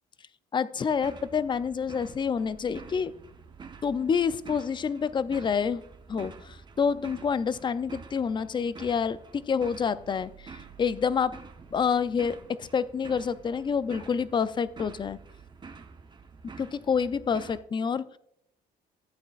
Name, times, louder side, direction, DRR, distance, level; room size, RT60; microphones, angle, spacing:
voice 1, 0.5-3.1 3.8-5.8 6.1-11.4 11.7-15.2 16.4-18.2, left 6 dB, 30° left, 16 dB, 0.4 m, -28 dB
sound 1, 0.9-17.6, right 5 dB, 25° right, 0.7 m, -48 dB
13.5 x 8.5 x 2.4 m, 0.76 s
cardioid pair, 110°, 17 cm